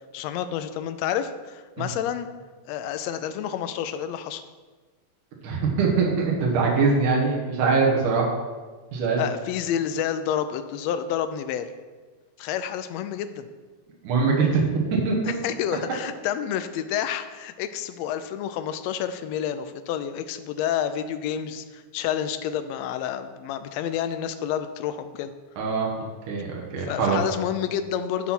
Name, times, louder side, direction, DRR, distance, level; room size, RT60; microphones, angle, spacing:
voice 1, 0.1-2.3 2.6-4.4 9.2-11.7 12.4-13.5 15.2-25.3 26.8-28.3, left 9 dB, 80° left, 10 dB, 1.6 m, -29 dB
voice 2, 5.4-8.3 8.9-9.2 14.0-14.6 14.9-15.2 25.6-27.2, right 4 dB, 90° right, -2 dB, 2.8 m, -23 dB
12.0 x 4.1 x 6.0 m, 1.4 s
omnidirectional pair, 3.5 m